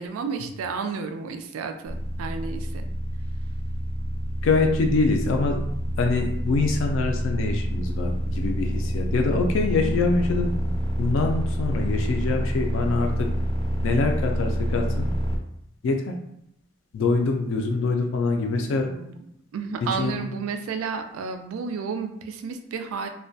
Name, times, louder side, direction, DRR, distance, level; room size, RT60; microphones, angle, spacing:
voice 1, 0.0-2.9 18.9-19.2 19.5-23.1, right 5 dB, 90° right, 7 dB, 0.3 m, -32 dB
sound 1, 1.9-15.4, equal, ahead, 0.5 m, -27 dB
voice 2, 4.4-5.6 6.0-10.5 11.0-13.3 13.8-15.1 15.8-16.1 16.9-18.9 20.0-20.2, left 3 dB, 65° left, 3 dB, 0.3 m, -24 dB
2.2 x 2.1 x 2.6 m, 0.77 s
head